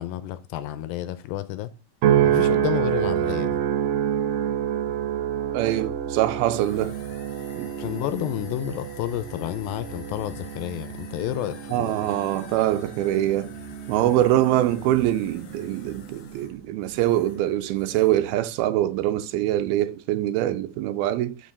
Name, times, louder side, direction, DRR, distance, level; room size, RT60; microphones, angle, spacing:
voice 1, 0.0-1.7 2.2-3.6 7.8-11.9, left 13 dB, 80° left, 2.3 m, -30 dB
sound 1, 2.0-16.5 17.0-17.4, right 10 dB, 70° right, 1.6 m, -28 dB
voice 2, 5.5-6.9 7.6-7.7 11.7-13.5 13.9-21.4, right 13 dB, 90° right, 2.5 m, -24 dB
sound 2, 6.5-17.5 17.7-18.2, left 6 dB, 60° left, 2.3 m, -47 dB
5.7 x 5.3 x 6.7 m
omnidirectional pair, 4.3 m